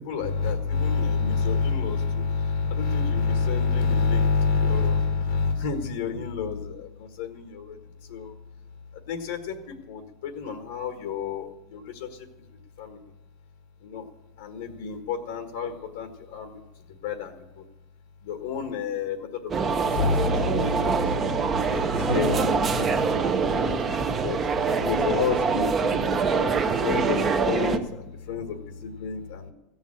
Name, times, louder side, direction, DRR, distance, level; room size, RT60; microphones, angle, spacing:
voice 1, 0.0-8.3 8.9-12.3 12.8-13.0 13.8-14.1 14.4-17.7 18.2-29.5, left 5 dB, 85° left, 6 dB, 1.5 m, -29 dB
sound 1, 19.5-27.8, right 5 dB, 25° right, 0.9 m, -24 dB
15.5 x 7.2 x 8.6 m, 0.97 s
supercardioid pair, 140°, 0 cm